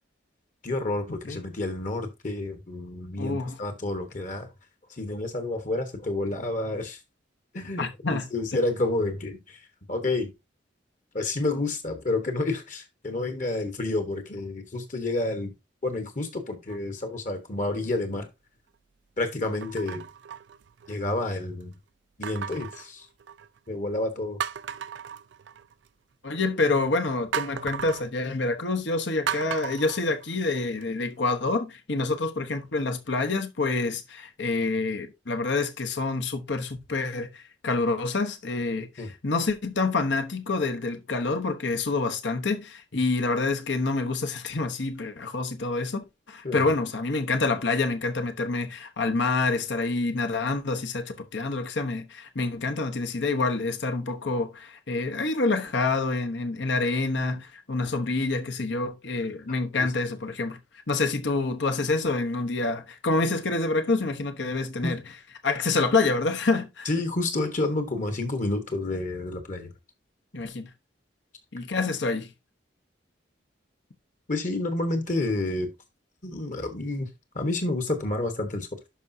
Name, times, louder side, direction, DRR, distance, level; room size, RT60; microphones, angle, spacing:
voice 1, 0.6-4.5 5.0-7.0 7.5-9.6 9.9-10.3 11.1-15.5 15.8-18.3 19.2-20.0 20.9-21.7 22.2-23.1 23.7-24.4 39.0-39.1 46.4-46.6 59.8-59.9 64.8-64.9 66.8-69.7 74.3-75.7 76.2-77.1 77.3-78.7, left 2 dB, 40° left, 1.2 m, -29 dB
voice 2, 3.2-3.6 7.8-8.3 26.2-60.6 60.9-65.0 65.4-66.9 70.3-70.7 71.5-72.3, left 3 dB, 70° left, 1.0 m, -27 dB
sound 1, 16.7-17.2 17.8-18.0 19.6-21.1 22.2-23.6 24.0-24.1 24.4-25.9 27.3-28.1 29.3-30.8 31.3-31.4, right 8 dB, 70° right, 0.4 m, -36 dB
11.5 x 4.9 x 2.7 m
head